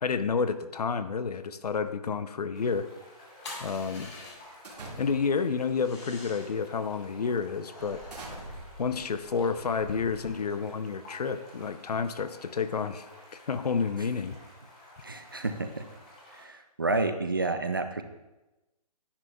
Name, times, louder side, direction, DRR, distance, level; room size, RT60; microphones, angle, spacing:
voice 1, 0.0-2.9 3.6-4.1 5.0-8.0 8.8-13.0 13.3-14.4, left 5 dB, 75° left, 11 dB, 0.6 m, -30 dB
sound 1, 2.5-16.5, left 1 dB, 10° left, 0.6 m, -53 dB
sound 2, 3.4-4.7 5.7-6.6 7.6-9.2, left 2 dB, 45° left, 1.7 m, -46 dB
sound 3, 4.6-5.5 6.3-6.5 7.0-7.1 7.8-10.7, right 2 dB, 90° right, 2.1 m, -45 dB
voice 2, 15.0-15.8 16.3-18.0, right 3 dB, 35° right, 8 dB, 0.3 m, -30 dB
9.8 x 7.1 x 2.3 m, 1.0 s
hypercardioid pair, 175°, 20 cm